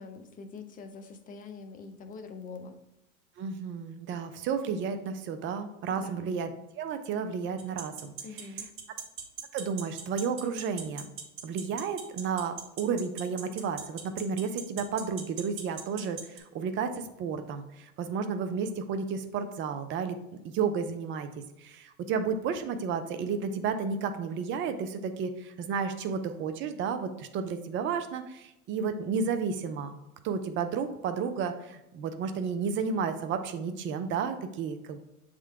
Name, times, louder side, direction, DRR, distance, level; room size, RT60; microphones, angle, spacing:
voice 1, 0.0-2.8 6.0-6.3 8.2-8.7, left 4 dB, 20° left, 7 dB, 0.6 m, -44 dB
voice 2, 3.4-6.5 6.8-8.5 9.5-11.1 11.4-20.2 20.5-21.3 21.6-29.9 30.2-35.0, right 6 dB, 30° right, 8 dB, 0.5 m, -32 dB
sound 1, 7.6-16.4, right 8 dB, 50° right, 1.4 m, -38 dB
7.3 x 3.8 x 3.4 m, 0.90 s
hypercardioid pair, 115°, 43 cm